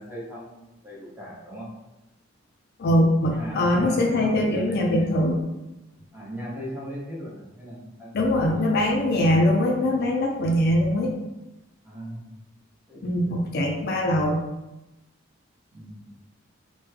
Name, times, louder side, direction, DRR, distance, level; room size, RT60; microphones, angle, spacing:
voice 1, 0.0-1.7 3.3-5.1 6.1-8.7 11.8-12.3 12.9-13.4 15.7-16.1, equal, 10° right, -6 dB, 0.8 m, -38 dB
voice 2, 2.8-5.4 8.1-11.1 13.0-14.4, left 1 dB, 55° left, 1 dB, 0.4 m, -22 dB
3.3 x 2.1 x 3.2 m, 0.98 s
head